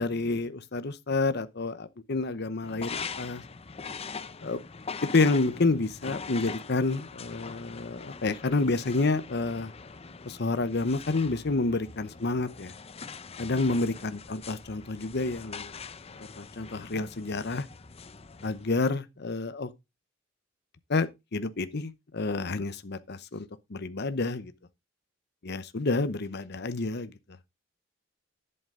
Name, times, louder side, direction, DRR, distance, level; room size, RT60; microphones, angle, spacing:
voice 1, 0.0-3.4 4.4-4.6 5.1-9.7 10.3-12.7 13.4-15.7 16.4-17.7 18.4-19.7 20.9-24.5 25.4-27.1, left 3 dB, 60° left, 0.9 m, -29 dB
sound 1, 2.6-18.9, left 5 dB, 30° left, 0.6 m, -42 dB
11.0 x 8.0 x 3.7 m
head